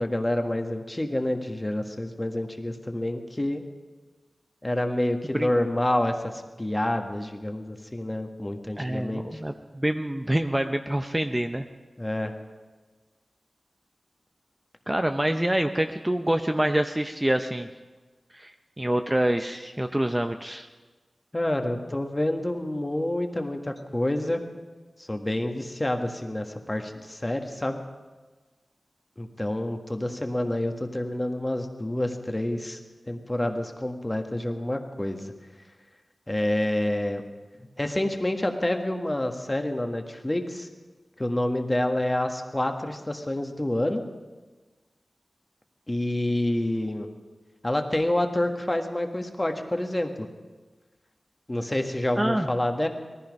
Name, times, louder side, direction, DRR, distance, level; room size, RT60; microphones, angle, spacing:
voice 1, 0.0-3.6 4.6-9.4 12.0-12.3 21.3-24.4 25.0-27.8 29.2-32.8 33.1-35.3 36.3-37.2 37.6-40.7 41.2-44.0 45.9-47.1 47.6-50.1 51.5-52.9, left 1 dB, 20° left, 5 dB, 1.5 m, -28 dB
voice 2, 8.8-11.7 14.9-17.7 18.3-18.5 18.8-20.7 52.2-52.5, right 1 dB, 15° right, 7 dB, 0.6 m, -26 dB
18.5 x 14.0 x 5.3 m, 1.3 s
wide cardioid pair, 70°, 0 cm